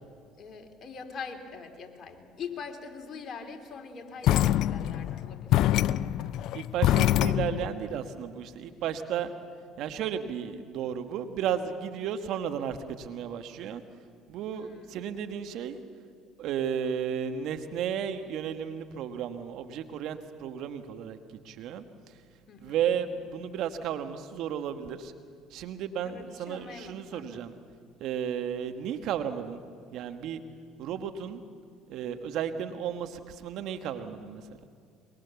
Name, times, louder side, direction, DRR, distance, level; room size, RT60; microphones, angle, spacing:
voice 1, 0.4-5.8 14.5-15.0 22.5-22.8 26.0-27.4, left 5 dB, 45° left, 4 dB, 3.5 m, -43 dB
sound 1, 4.2-7.7, left 13 dB, 65° left, 0.5 m, -25 dB
voice 2, 6.5-9.3 9.8-13.8 14.3-15.8 16.4-21.2 21.4-21.8 22.6-25.1 25.5-27.6 28.0-29.6 29.9-30.4 30.8-31.4 31.9-34.4, right 8 dB, 65° right, 8 dB, 1.5 m, -33 dB
23.0 x 23.0 x 7.1 m, 2.2 s
hypercardioid pair, 70°, 0 cm